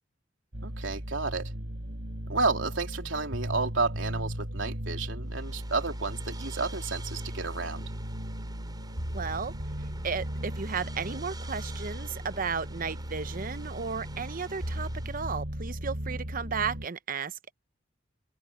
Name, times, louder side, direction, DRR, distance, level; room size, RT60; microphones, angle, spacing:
sound 1, 0.5-16.9, equal, 70° right, 4.8 m, -37 dB
voice 1, 0.6-1.5 2.3-7.8, right 3 dB, 85° right, 3.3 m, -31 dB
sound 2, 5.3-15.4, right 3 dB, 20° right, 5.3 m, -50 dB
voice 2, 9.1-9.5 10.0-17.5, right 5 dB, 45° right, 0.8 m, -34 dB
open air
head